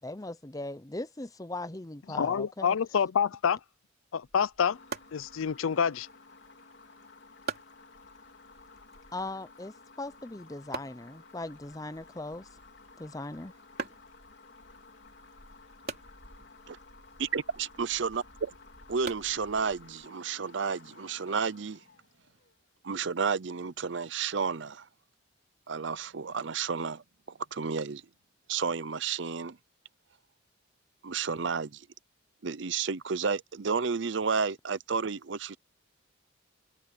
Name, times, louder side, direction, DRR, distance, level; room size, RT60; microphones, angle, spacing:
voice 1, 0.0-2.8 9.1-12.5 13.0-13.5, left 2 dB, 15° left, 0.7 m, -39 dB
voice 2, 2.1-3.6 4.1-4.8 5.1-6.1, left 7 dB, 90° left, 0.5 m, -27 dB
sound 1, 4.2-20.1, right 4 dB, 50° right, 3.5 m, -46 dB
sound 2, 4.7-22.7, left 3 dB, 60° left, 4.2 m, -55 dB
voice 3, 17.2-18.5 18.9-21.8 22.8-24.9 25.7-28.0 28.5-29.6 31.0-31.9 32.4-35.6, right 5 dB, 65° right, 0.6 m, -31 dB
head